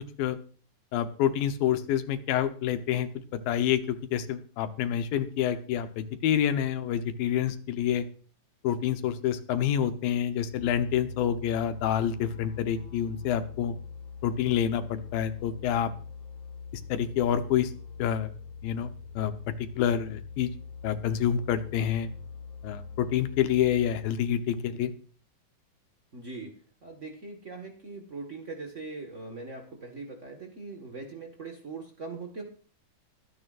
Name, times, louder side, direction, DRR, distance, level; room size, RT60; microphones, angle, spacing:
voice 1, 0.9-8.1 8.6-13.7 14.2-15.9 16.9-17.7 18.0-18.3 18.6-18.9 19.2-19.3 19.8-20.5 20.8-22.1 22.6-24.9, left 9 dB, 80° left, 10 dB, 2.7 m, -27 dB
sound 1, 10.5-24.0, left 5 dB, 50° left, 4.0 m, -43 dB
voice 2, 26.1-26.5 26.8-32.4, right 3 dB, 70° right, 2 dB, 0.7 m, -41 dB
23.5 x 9.8 x 2.5 m, 0.42 s
omnidirectional pair, 4.1 m